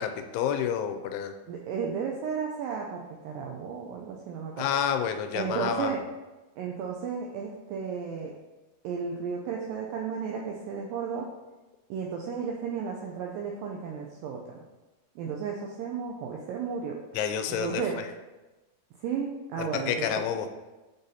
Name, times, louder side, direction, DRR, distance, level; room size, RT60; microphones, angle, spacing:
voice 1, 0.0-1.3 4.6-5.9 17.1-17.8 19.6-20.5, left 8 dB, 85° left, 7 dB, 2.5 m, -29 dB
voice 2, 1.5-4.7 5.3-6.0 6.6-8.3 8.8-11.3 11.9-14.6 15.2-17.0 17.5-18.0 19.0-20.2, right 6 dB, 85° right, 0 dB, 2.0 m, -33 dB
8.6 x 4.0 x 2.7 m, 1.1 s
omnidirectional pair, 4.6 m